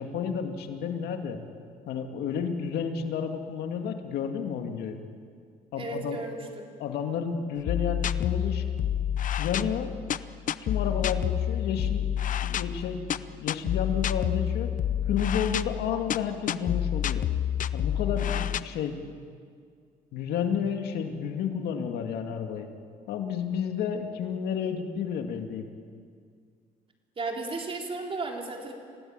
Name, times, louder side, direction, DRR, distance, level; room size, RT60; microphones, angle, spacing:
voice 1, 0.0-1.4 1.9-5.0 5.7-6.2 6.8-8.9 9.4-9.9 10.6-14.7 15.1-17.3 17.7-19.0 20.1-22.7 23.1-25.7, left 7 dB, 85° left, 5 dB, 2.2 m, -31 dB
voice 2, 5.7-6.7 27.2-28.7, right 3 dB, 35° right, 1 dB, 4.1 m, -34 dB
sound 1, 7.7-18.6, left 10 dB, 55° left, 0.7 m, -29 dB
27.0 x 17.5 x 9.0 m, 2.1 s
cardioid pair, 110°, 16 cm